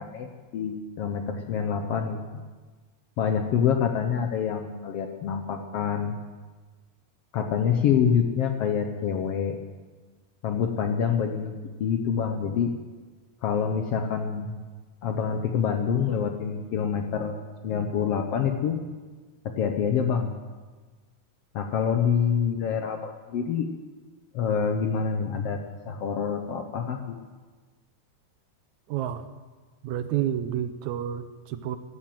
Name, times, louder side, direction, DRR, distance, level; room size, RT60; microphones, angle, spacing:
voice 1, 0.0-2.4 3.2-6.2 7.3-9.6 10.4-11.5 11.8-12.7 13.4-14.6 15.0-18.8 19.6-20.3 21.5-23.7 24.3-25.6 25.9-27.2, left 7 dB, 70° left, 5 dB, 1.6 m, -26 dB
voice 2, 28.9-29.2 29.8-31.8, right 10 dB, 80° right, 11 dB, 2.0 m, -29 dB
15.5 x 8.7 x 7.8 m, 1.3 s
omnidirectional pair, 3.5 m